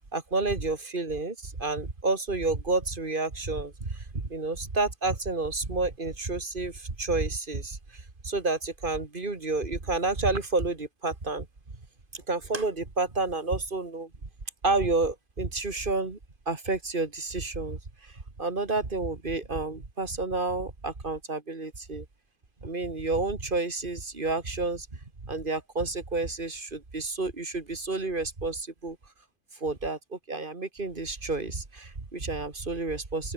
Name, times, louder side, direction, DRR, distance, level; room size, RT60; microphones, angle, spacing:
voice 1, 0.1-11.5 12.1-14.1 14.6-16.2 16.5-18.1 18.4-22.1 22.6-29.0 29.6-33.3, right 3 dB, 45° right, 2.6 m, -30 dB
open air
omnidirectional pair, 1.2 m